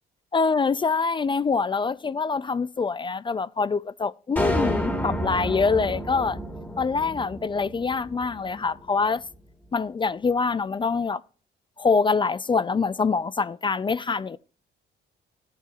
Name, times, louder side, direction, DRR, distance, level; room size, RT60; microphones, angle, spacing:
voice 1, 0.3-6.4 6.8-9.2 9.7-11.2 11.8-14.4, left 4 dB, 25° left, 0.3 m, -25 dB
sound 1, 4.4-8.8, equal, 10° left, 1.5 m, -30 dB
14.0 x 8.3 x 2.4 m
cardioid pair, 90°, 20 cm